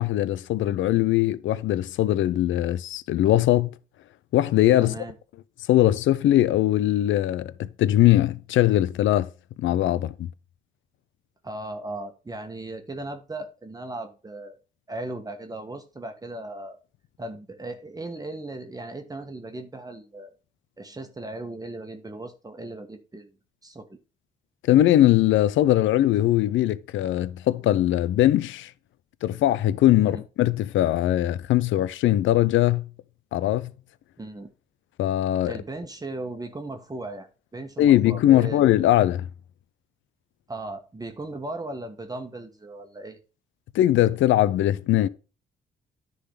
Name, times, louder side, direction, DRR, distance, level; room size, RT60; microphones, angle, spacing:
voice 1, 0.0-3.7 4.3-4.9 5.7-9.3 9.6-10.3 24.7-28.7 29.2-32.9 33.3-33.7 35.0-35.6 37.8-39.3 43.7-45.1, left 13 dB, 75° left, 0.6 m, -21 dB
voice 2, 4.8-5.1 11.4-14.6 14.9-16.8 17.2-20.3 20.8-23.4 23.6-23.9 30.0-30.2 34.2-34.5 35.4-38.7 40.5-43.2, right 2 dB, 20° right, 1.4 m, -37 dB
10.0 x 4.0 x 5.6 m
cardioid pair, 90°, 20 cm